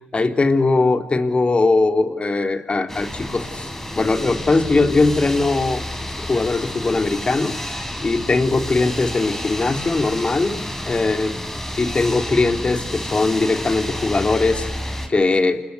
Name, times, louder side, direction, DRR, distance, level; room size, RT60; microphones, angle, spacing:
voice 1, 0.1-3.7 3.9-5.8 6.3-11.4 11.8-14.7 15.1-15.6, left 3 dB, 35° left, 8 dB, 3.3 m, -20 dB
sound 1, 2.9-15.1, left 1 dB, 10° left, 5.4 m, -30 dB
28.5 x 21.5 x 9.7 m, 0.97 s
supercardioid pair, 50°, 3 cm